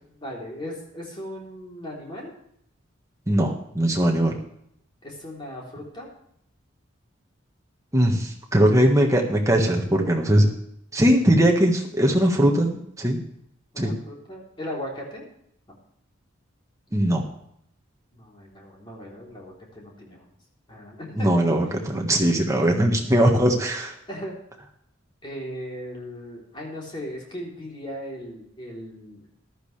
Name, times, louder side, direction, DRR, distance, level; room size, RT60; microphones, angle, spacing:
voice 1, 0.1-2.3 5.0-6.1 13.7-15.2 18.1-20.3 20.7-21.3 24.1-24.4 25.2-29.2, equal, 25° left, -3 dB, 3.4 m, -37 dB
voice 2, 3.3-4.3 7.9-10.5 10.9-13.2 13.8-14.0 16.9-17.2 21.2-23.9, right 1 dB, 15° right, 1 dB, 1.5 m, -20 dB
14.5 x 12.5 x 3.3 m, 0.72 s
head